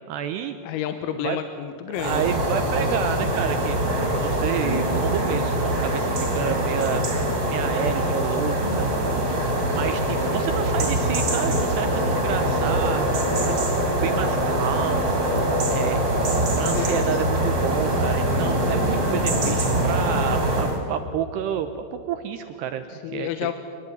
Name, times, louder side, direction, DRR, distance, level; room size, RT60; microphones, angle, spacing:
voice 1, 0.1-0.6 1.2-1.4 1.9-7.1 7.5-9.4 9.7-13.5 13.8-15.1 15.7-16.0 16.6-22.8 23.1-23.5, right 9 dB, 85° right, 8 dB, 2.4 m, -30 dB
voice 2, 0.6-2.2 16.8-17.0 22.9-23.5, left 10 dB, 85° left, 8 dB, 3.8 m, -30 dB
sound 1, 1.9-20.8, right 1 dB, 25° right, 4.1 m, -23 dB
25.5 x 20.5 x 9.6 m, 2.3 s
omnidirectional pair, 6.0 m